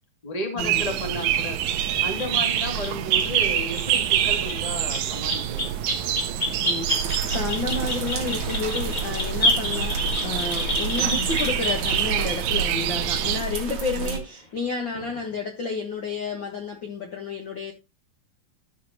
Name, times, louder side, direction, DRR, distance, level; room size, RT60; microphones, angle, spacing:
voice 1, 0.2-1.6 2.0-5.7 7.0-7.1 11.1-11.3 14.0-14.1, left 1 dB, 15° left, 1.5 m, -33 dB
sound 1, 0.6-13.4, right 10 dB, 80° right, 2.5 m, -26 dB
sound 2, 2.2-2.3 2.8-2.9 3.6-3.8 4.4-4.6 4.9-12.1 13.5-13.6 14.9-15.3, left 1 dB, 30° left, 0.7 m, -28 dB
voice 2, 6.6-17.7, left 4 dB, 70° left, 1.1 m, -31 dB
sound 3, 6.9-14.2, right 3 dB, 55° right, 3.0 m, -31 dB
13.0 x 6.1 x 2.8 m
omnidirectional pair, 4.2 m